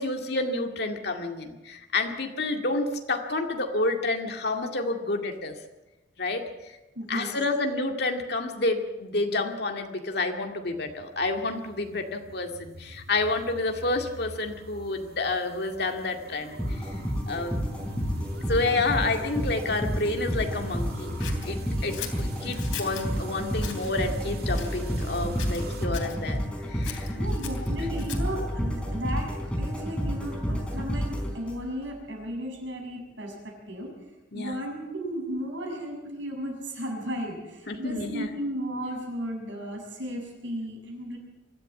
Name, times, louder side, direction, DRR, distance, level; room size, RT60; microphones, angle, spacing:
voice 1, 0.0-5.6 6.2-6.7 7.1-16.9 17.3-17.5 18.5-21.2 21.4-27.2 34.3-34.6 37.7-38.3, left 2 dB, 60° left, 4 dB, 2.2 m, -29 dB
voice 2, 7.0-7.3 27.1-29.3 29.6-33.9 34.3-41.2, equal, 80° right, 0 dB, 6.9 m, -35 dB
sound 1, 10.7-25.9, right 1 dB, 55° right, 2.1 m, -42 dB
sound 2, 16.6-31.8, equal, 5° left, 4.3 m, -30 dB
Scissors, 21.2-23.1 23.6-23.9 24.5-25.1 25.4-26.2 26.8-28.4, left 9 dB, 85° left, 3.3 m, -40 dB
23.0 x 14.0 x 8.5 m, 1.1 s
head